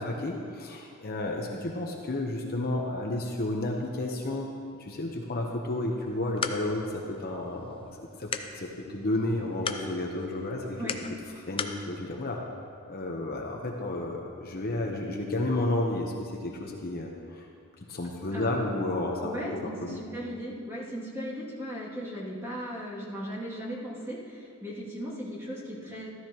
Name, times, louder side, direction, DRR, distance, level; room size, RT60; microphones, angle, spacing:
voice 1, 0.0-4.5 4.8-7.8 8.2-10.9 11.4-12.4 12.9-17.5 17.9-20.0, left 2 dB, 45° left, 0 dB, 1.0 m, -32 dB
sound 1, 6.0-11.8, left 5 dB, 25° left, 0.5 m, -39 dB
voice 2, 19.2-26.1, equal, 15° right, -7 dB, 2.5 m, -37 dB
14.0 x 13.0 x 3.0 m, 2.6 s
head